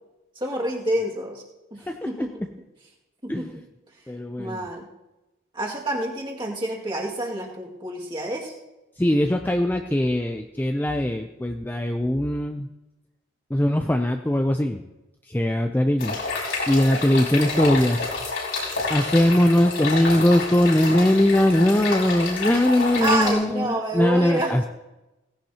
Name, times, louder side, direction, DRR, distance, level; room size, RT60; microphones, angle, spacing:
voice 1, 0.4-1.4 1.7-2.4 3.2-3.6 4.4-4.9 5.5-8.5 23.0-24.5, right 1 dB, 25° right, -2 dB, 2.1 m, -28 dB
voice 2, 1.9-2.3 3.3-3.5 4.1-4.7 9.0-12.7 13.5-14.8 15.3-16.2 16.7-18.0 18.9-24.7, left 1 dB, 10° left, 5 dB, 0.4 m, -21 dB
sound 1, 16.0-23.3, left 3 dB, 70° left, 5.1 m, -28 dB
18.0 x 16.0 x 2.9 m, 1.0 s
head